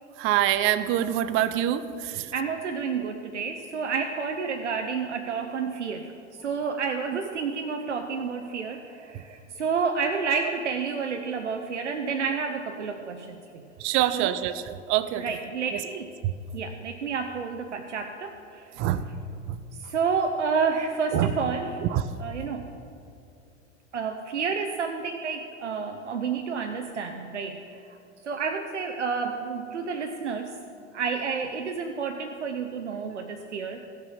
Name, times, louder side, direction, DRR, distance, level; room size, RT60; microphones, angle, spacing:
voice 1, 0.2-2.3 13.8-15.2 15.7-15.8 16.2-16.3 18.8-19.1 19.5-19.6 21.1-21.3 21.9-22.0, right 12 dB, 35° right, 13 dB, 0.6 m, -25 dB
voice 2, 2.3-6.1 6.4-13.7 14.1-14.3 15.2-16.1 16.5-18.8 19.7-21.8 22.2-22.7 23.9-28.0 28.2-30.6 30.9-33.8, right 5 dB, 80° right, 4 dB, 0.7 m, -30 dB
15.0 x 6.5 x 5.6 m, 2.5 s
figure-of-eight pair, 80°, 35 cm